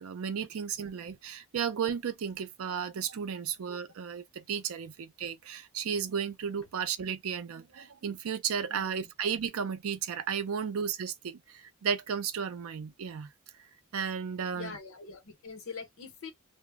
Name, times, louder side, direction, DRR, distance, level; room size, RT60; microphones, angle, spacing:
voice 1, 0.0-13.3 13.9-14.8, right 7 dB, 85° right, 0.4 m, -34 dB
voice 2, 14.5-16.3, left 4 dB, 75° left, 0.8 m, -43 dB
2.0 x 2.0 x 3.4 m
head